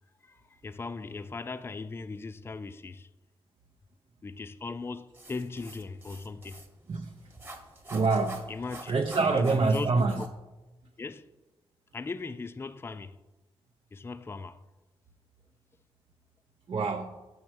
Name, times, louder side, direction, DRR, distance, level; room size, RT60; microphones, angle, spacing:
voice 1, 0.2-3.1 4.2-6.6 8.5-8.9 9.2-10.3 11.0-11.3 11.9-13.2 13.9-14.6, left 4 dB, 20° left, 0.3 m, -38 dB
sound 1, 5.1-10.3, right 2 dB, 20° right, 1.1 m, -47 dB
voice 2, 7.9-8.5 8.9-10.2 16.7-17.1, right 3 dB, 50° right, 0.6 m, -25 dB
7.1 x 3.1 x 6.1 m
cardioid pair, 60°, 11 cm